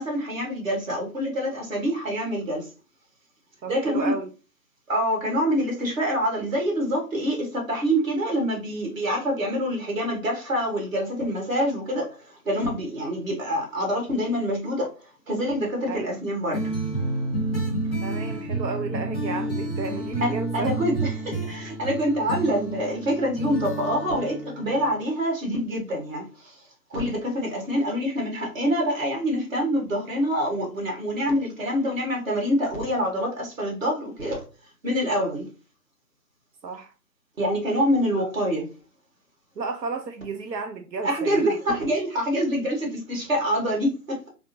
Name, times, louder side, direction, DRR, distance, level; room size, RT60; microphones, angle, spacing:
voice 1, 0.0-2.7 3.6-4.1 4.9-14.9 15.3-16.6 20.2-26.6 26.9-34.4 34.8-35.4 37.4-38.6 41.0-44.3, equal, 50° right, 1.6 m, -26 dB
voice 2, 3.6-4.3 15.9-16.2 18.0-20.7 35.2-35.3 36.6-36.9 38.2-38.3 39.6-41.8, right 4 dB, 90° right, 0.7 m, -33 dB
sound 1, 16.5-25.0, right 2 dB, 5° left, 0.8 m, -30 dB
3.5 x 2.1 x 2.6 m
figure-of-eight pair, 155°, 50 cm